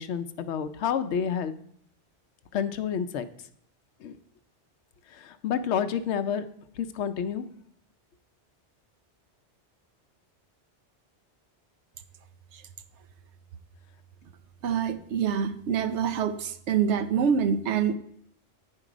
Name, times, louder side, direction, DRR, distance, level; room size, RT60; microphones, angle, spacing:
voice 1, 0.0-1.5 2.5-3.2 4.0-4.2 5.1-6.4 6.8-7.4, left 8 dB, 80° left, 11 dB, 0.9 m, -29 dB
voice 2, 14.6-17.9, right 7 dB, 80° right, 11 dB, 0.9 m, -26 dB
9.6 x 4.6 x 5.0 m, 0.66 s
omnidirectional pair, 1.2 m